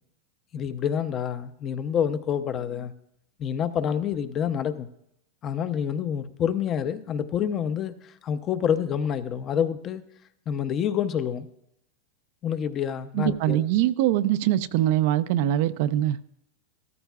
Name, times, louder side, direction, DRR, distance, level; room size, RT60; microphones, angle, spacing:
voice 1, 0.5-2.9 3.4-4.9 5.4-10.0 10.5-11.5 12.4-13.6, left 8 dB, 35° left, 11 dB, 0.6 m, -27 dB
voice 2, 13.1-16.3, right 13 dB, 60° right, 13 dB, 0.4 m, -23 dB
13.5 x 13.5 x 2.4 m, 0.76 s
hypercardioid pair, 125°, 0 cm